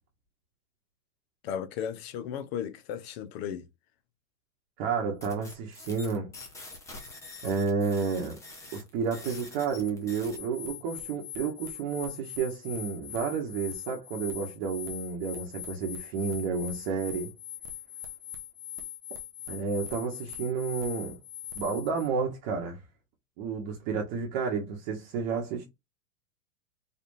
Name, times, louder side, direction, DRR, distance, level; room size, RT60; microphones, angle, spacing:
voice 1, 1.4-3.7, left 8 dB, 45° left, 0.8 m, -35 dB
voice 2, 4.8-6.3 7.4-8.4 8.7-17.3 19.5-21.2 21.6-22.8 23.4-25.6, right 5 dB, 40° right, 1.0 m, -31 dB
sound 1, 5.2-22.1, left 8 dB, 5° left, 0.4 m, -42 dB
4.2 x 3.4 x 2.6 m
supercardioid pair, 150°, 42 cm